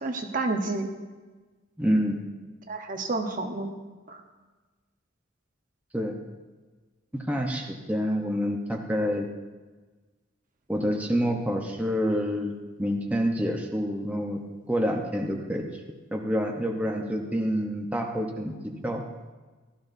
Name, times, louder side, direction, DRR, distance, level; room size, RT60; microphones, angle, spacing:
voice 1, 0.0-0.9 2.7-3.7 4.1-4.2, right 3 dB, 45° right, 4 dB, 1.0 m, -29 dB
voice 2, 1.8-2.2 5.9-6.2 7.1-9.3 10.7-12.5 12.8-14.4 14.7-15.7 16.1-19.0, equal, 10° right, 0 dB, 0.9 m, -27 dB
16.0 x 12.5 x 2.7 m, 1.3 s
head